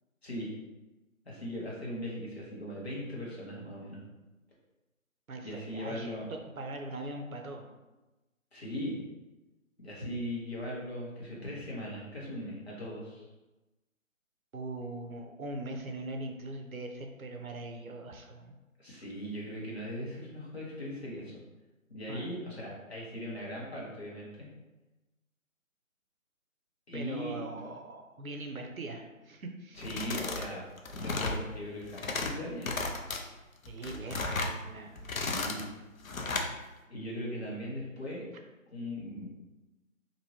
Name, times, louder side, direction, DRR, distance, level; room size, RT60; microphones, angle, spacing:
voice 1, 0.2-0.5 1.2-4.0 5.4-6.3 8.5-9.0 9.8-13.3 18.8-21.4 21.9-24.5 26.9-27.4 29.7-30.6 30.9-32.7 35.1-35.7 36.9-38.2 38.7-39.3, equal, 50° left, -5 dB, 1.1 m, -39 dB
voice 2, 5.3-7.7 14.5-18.5 22.1-22.3 26.9-29.8 33.7-35.2, right 2 dB, 80° right, 4 dB, 0.7 m, -41 dB
sound 1, 29.8-30.5 30.8-31.4 31.8-32.3 32.6-33.2 33.7-34.5 35.0-35.6 36.0-36.5, left 3 dB, 75° left, 0.6 m, -34 dB
3.0 x 2.6 x 2.8 m, 1.1 s
figure-of-eight pair, 165°, 41 cm